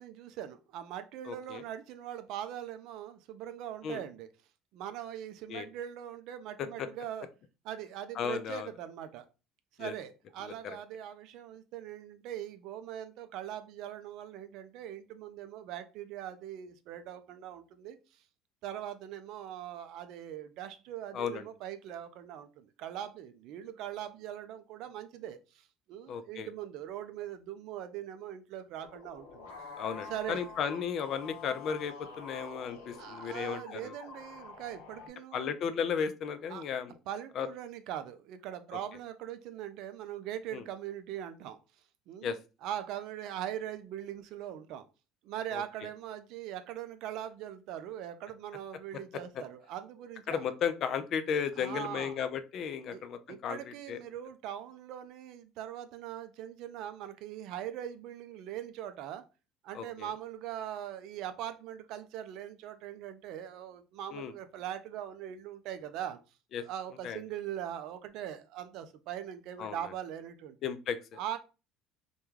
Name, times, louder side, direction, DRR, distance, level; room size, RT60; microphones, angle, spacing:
voice 1, 0.0-4.3 4.7-7.3 7.6-9.3 9.8-18.0 18.6-29.5 30.1-30.4 33.0-35.5 36.5-36.6 37.1-41.6 42.1-42.3 42.6-44.9 45.2-50.4 51.6-52.2 52.9-59.2 59.6-66.2 66.6-70.6 71.2-71.4, right 11 dB, 65° right, 10 dB, 0.4 m, -41 dB
voice 2, 1.3-1.6 3.8-4.0 5.5-5.7 6.6-6.9 8.2-8.7 9.8-9.9 10.4-10.8 21.1-21.5 26.1-26.5 29.8-33.9 35.3-36.9 37.4-37.5 40.5-40.6 42.2-42.4 45.5-45.6 50.3-54.0 59.7-60.1 64.1-64.3 66.5-66.6 67.0-67.2 69.6-69.8 70.6-71.2, left 7 dB, 55° left, 11 dB, 0.3 m, -35 dB
sound 1, 28.8-35.1, left 4 dB, 90° left, 0.6 m, -47 dB
2.2 x 2.2 x 3.1 m, 0.31 s
supercardioid pair, 85°, 0 cm